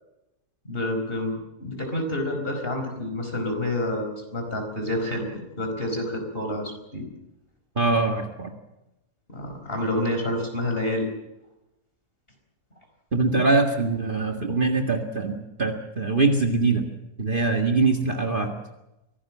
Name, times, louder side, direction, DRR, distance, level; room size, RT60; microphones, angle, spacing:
voice 1, 0.6-5.3 5.6-7.1 9.3-11.1 13.3-13.4, left 1 dB, 35° left, 4 dB, 4.9 m, -28 dB
voice 2, 7.8-8.5 13.1-16.8 17.2-18.5, right 3 dB, 35° right, 4 dB, 2.0 m, -23 dB
24.5 x 17.5 x 7.4 m, 0.93 s
omnidirectional pair, 1.7 m